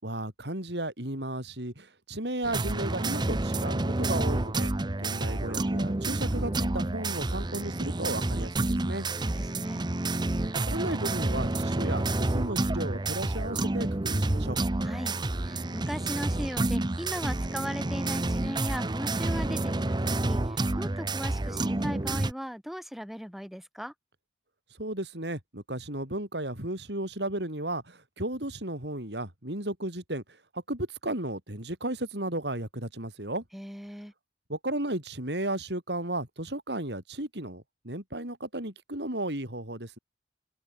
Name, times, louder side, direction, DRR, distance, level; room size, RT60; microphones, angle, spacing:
voice 1, 0.0-4.7 5.0-9.1 10.6-14.6 24.8-30.2 30.5-33.4 34.5-40.0, right 1 dB, 70° right, 6.4 m, -34 dB
sound 1, 2.4-22.3, right 2 dB, 25° right, 0.8 m, -29 dB
voice 2, 9.4-9.8 14.8-15.1 15.4-23.9 33.5-34.1, equal, ahead, 4.4 m, -38 dB
head